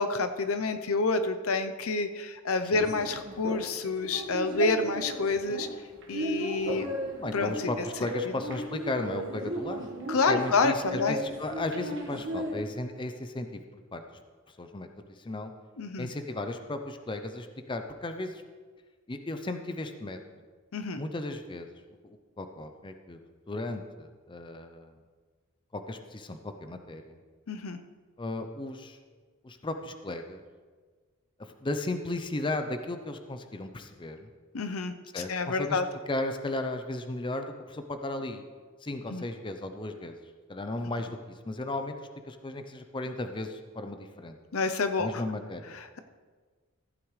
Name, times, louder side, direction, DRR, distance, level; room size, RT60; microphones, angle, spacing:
voice 1, 0.0-5.7 6.1-6.9 7.3-7.5 8.2-8.3 10.1-11.2 15.8-16.1 20.7-21.0 27.5-27.8 34.5-35.9 39.1-39.2 44.5-45.1, left 3 dB, 80° left, 9 dB, 0.7 m, -28 dB
sound 1, 2.8-12.6, right 1 dB, 55° right, 1.5 m, -36 dB
voice 2, 7.2-14.0 14.5-15.5 16.0-18.4 19.1-20.2 21.0-21.7 22.0-23.2 23.5-24.9 25.7-27.2 28.2-29.0 29.4-30.4 31.4-34.3 35.1-35.8 36.1-38.4 38.8-40.2 40.5-44.4 45.0-45.8, left 2 dB, 20° left, 7 dB, 0.5 m, -35 dB
15.0 x 9.1 x 3.2 m, 1.5 s
head